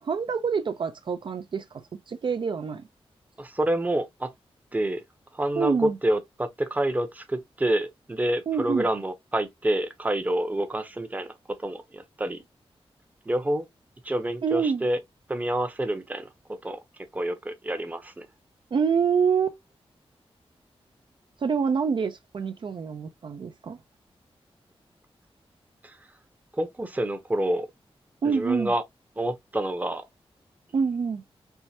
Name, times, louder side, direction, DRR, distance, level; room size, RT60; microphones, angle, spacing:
voice 1, 0.0-2.9 5.6-6.0 8.5-8.9 14.4-14.9 18.7-19.6 21.4-23.8 28.2-28.7 30.7-31.2, right 6 dB, 50° right, 0.4 m, -26 dB
voice 2, 3.4-4.3 4.7-5.0 5.3-11.3 11.6-12.4 13.3-13.6 14.0-15.0 15.3-16.3 16.6-16.8 17.1-18.3 25.8-26.0 26.6-27.7 28.2-28.8 29.2-30.0, right 1 dB, 15° right, 0.7 m, -28 dB
4.5 x 3.1 x 2.7 m
wide cardioid pair, 155°, 10 cm